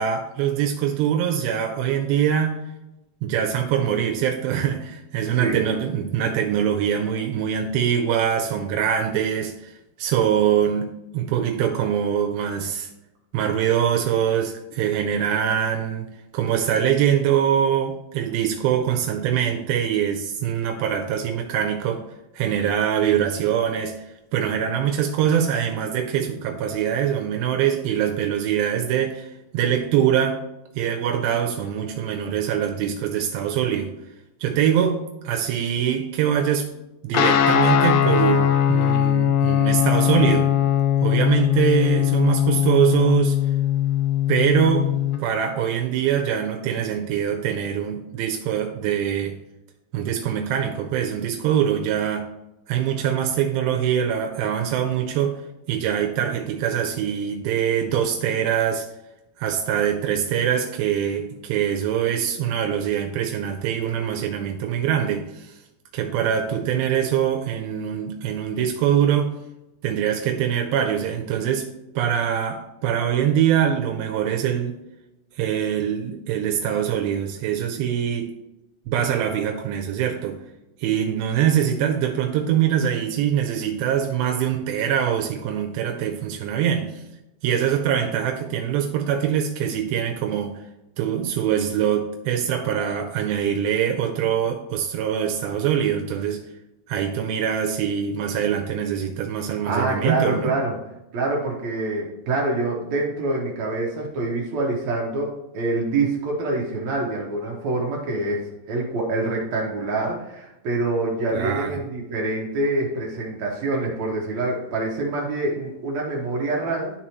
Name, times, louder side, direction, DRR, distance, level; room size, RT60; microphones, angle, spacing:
voice 1, 0.0-2.6 3.2-9.7 10.0-12.9 13.3-22.0 22.3-23.9 24.3-30.4 30.8-33.9 34.4-35.0 35.2-36.7 37.0-40.5 41.0-43.4 44.3-44.9 45.2-49.4 49.9-52.3 52.7-55.4 55.7-58.9 59.4-65.5 65.9-69.3 69.8-71.7 72.0-74.7 75.4-78.3 78.9-80.4 80.8-87.0 87.4-90.5 91.0-96.4 96.9-100.5 111.3-111.8, right 9 dB, 85° right, 3 dB, 2.5 m, -23 dB
Guitar, 37.1-45.2, left 10 dB, 85° left, 2.3 m, -20 dB
voice 2, 99.7-100.8 101.1-116.9, right 2 dB, 65° right, -1 dB, 2.1 m, -25 dB
11.5 x 4.1 x 3.0 m, 0.93 s
omnidirectional pair, 4.2 m